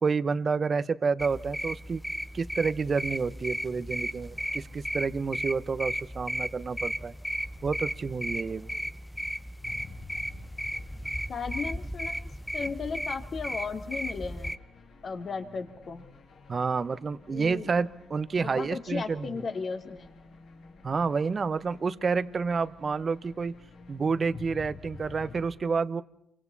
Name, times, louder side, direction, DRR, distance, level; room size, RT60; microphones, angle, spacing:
voice 1, 0.0-2.0 2.3-7.1 7.6-8.7 16.5-19.3 20.8-23.5 23.9-26.0, right 5 dB, 40° right, 14 dB, 1.1 m, -29 dB
sound 1, 1.2-14.6, equal, 5° left, 0.8 m, -35 dB
sound 2, 9.6-25.5, left 4 dB, 75° left, 5.9 m, -51 dB
voice 2, 11.3-12.3 12.5-14.6 15.0-16.1 17.3-17.7 18.4-20.2, left 5 dB, 50° left, 6 dB, 2.7 m, -35 dB
28.0 x 25.0 x 4.1 m, 0.75 s
cardioid pair, 80°, 0 cm